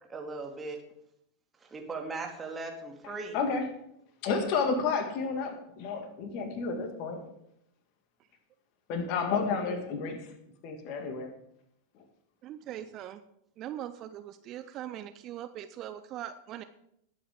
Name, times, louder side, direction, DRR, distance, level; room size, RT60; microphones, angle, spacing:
voice 1, 0.1-0.8 1.6-3.4, right 3 dB, 15° right, 2 dB, 2.5 m, -38 dB
voice 2, 3.3-3.7 4.2-7.3 8.9-10.2 10.6-11.3, left 5 dB, 45° left, 6 dB, 2.2 m, -31 dB
voice 3, 12.4-13.2 13.6-16.6, right 11 dB, 35° right, 11 dB, 0.7 m, -41 dB
20.0 x 8.6 x 3.7 m, 0.75 s
figure-of-eight pair, 90°, 0 cm